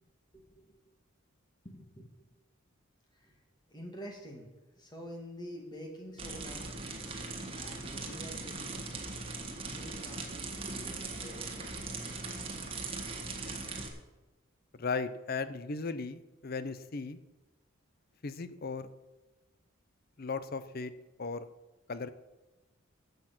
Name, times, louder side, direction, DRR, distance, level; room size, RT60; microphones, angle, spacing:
voice 1, 0.3-0.7 1.6-2.1 3.1-3.4 3.7-4.5 4.8-6.7 7.5-8.8 9.6-11.6, equal, 20° left, 1 dB, 2.2 m, -47 dB
sound 1, 6.2-13.9, right 3 dB, 25° right, 1.6 m, -40 dB
voice 2, 14.7-17.2 18.2-18.9 20.2-20.9 21.2-21.5 21.9-22.1, left 4 dB, 45° left, 13 dB, 0.6 m, -36 dB
14.0 x 8.0 x 6.0 m, 1.1 s
head